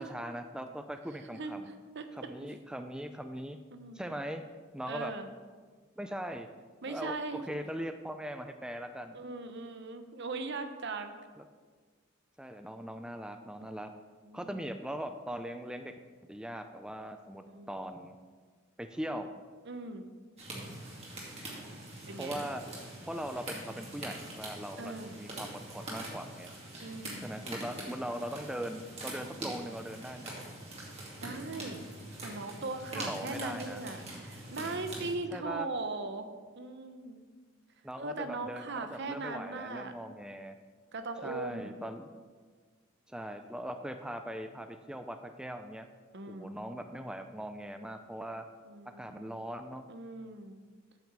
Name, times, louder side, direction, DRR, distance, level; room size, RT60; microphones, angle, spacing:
voice 1, 0.1-1.7 2.1-3.6 3.9-4.4 4.7-5.1 6.0-6.5 6.9-9.2 12.4-13.9 14.3-15.9 16.3-18.2 18.8-19.3 22.2-22.6 23.1-26.5 27.2-30.3 33.0-33.8 35.3-35.7 37.8-40.6 41.2-42.1 43.1-45.9 46.3-48.5 49.0-49.9, equal, 5° right, 7 dB, 0.4 m, -40 dB
voice 2, 1.3-1.6 1.9-2.1 3.7-4.1 4.8-5.3 6.8-7.4 9.1-11.2 13.6-13.7 14.2-14.6 17.5-17.7 19.6-20.1 22.1-22.3 24.8-25.2 26.8-27.3 31.2-31.9 32.2-36.3 36.5-37.2 38.0-39.9 40.9-41.8 46.1-46.6 48.7-49.4 49.9-50.6, right 3 dB, 60° right, 8 dB, 0.9 m, -39 dB
sound 1, 20.4-35.1, right 1 dB, 35° right, 2.5 m, -43 dB
8.5 x 6.2 x 7.4 m, 1.5 s
head